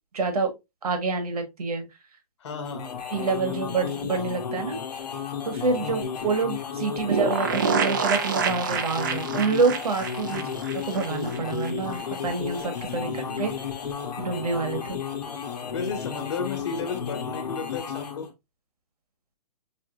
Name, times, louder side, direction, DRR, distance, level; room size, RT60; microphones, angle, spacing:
voice 1, 0.1-0.5 0.8-1.9 3.1-4.8 5.4-10.4 10.8-13.1 13.4-13.5 14.2-15.0, right 4 dB, 65° right, 1.4 m, -27 dB
voice 2, 2.4-3.5 5.8-6.1 10.3-10.6 13.0-13.6 15.7-18.3, left 4 dB, 45° left, 1.2 m, -34 dB
sound 1, 2.5-18.3, left 7 dB, 80° left, 1.1 m, -33 dB
sound 2, 7.1-11.7 12.0-12.1 12.3-12.4, right 6 dB, 30° right, 0.5 m, -27 dB
5.0 x 3.2 x 2.4 m
hypercardioid pair, 170°, 21 cm